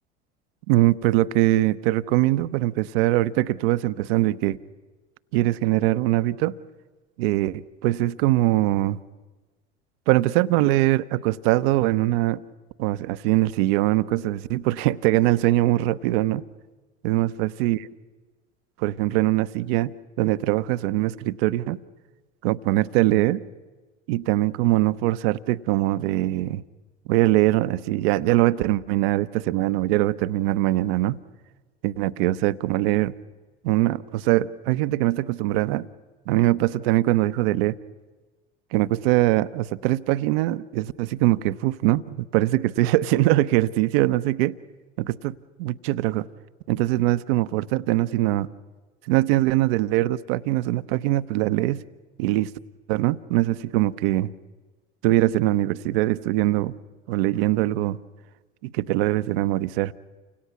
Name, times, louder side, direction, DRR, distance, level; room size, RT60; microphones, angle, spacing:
voice 1, 0.7-4.6 5.3-6.6 7.2-9.0 10.1-12.4 12.8-16.4 17.0-17.9 18.8-21.8 22.4-23.4 24.1-26.6 27.1-31.2 31.8-33.1 33.6-35.9 36.3-37.8 38.7-44.6 45.0-46.2 46.7-48.5 49.0-51.8 52.2-52.5 52.9-54.3 55.0-56.7 57.1-58.0 58.6-59.9, right 16 dB, 55° right, 15 dB, 0.8 m, -22 dB
30.0 x 25.5 x 6.0 m, 1.3 s
figure-of-eight pair, 70°, 35 cm